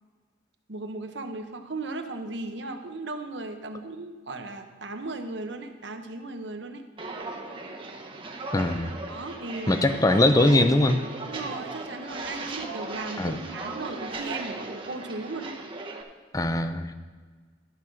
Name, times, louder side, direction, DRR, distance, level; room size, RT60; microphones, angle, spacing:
voice 1, 0.7-6.8 9.1-9.8 11.3-15.6, right 2 dB, 70° right, 6 dB, 0.9 m, -36 dB
Walk footsteps, 7.0-16.0, right 2 dB, 30° right, 0.9 m, -37 dB
voice 2, 8.5-8.9 9.7-11.0 13.2-13.4 16.3-16.9, left 1 dB, 20° left, 9 dB, 0.5 m, -21 dB
12.0 x 5.5 x 6.2 m, 1.5 s
head